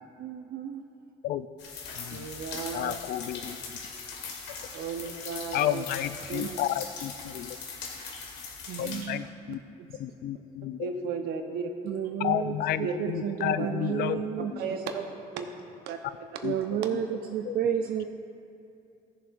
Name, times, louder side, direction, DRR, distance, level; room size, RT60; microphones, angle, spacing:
voice 1, 0.2-0.8 6.4-6.6 8.7-10.0 11.8-14.5 16.4-18.1, right 9 dB, 65° right, 4 dB, 0.5 m, -32 dB
sound 1, 1.6-9.0, left 5 dB, 85° left, 1.8 m, -40 dB
voice 2, 2.1-3.0 4.7-5.8 6.3-6.5 10.8-11.7 12.8-13.0 13.6-13.7 14.6-15.0 15.3-15.5 15.9-16.0, right 5 dB, 85° right, 5 dB, 1.0 m, -34 dB
voice 3, 2.7-3.6 5.5-7.6 8.8-9.6 10.0-10.8 12.2-14.6 16.4-16.6 17.5-17.6, left 12 dB, 65° left, 13 dB, 0.4 m, -31 dB
17.0 x 7.1 x 2.6 m, 2.6 s
cardioid pair, 110°, 17 cm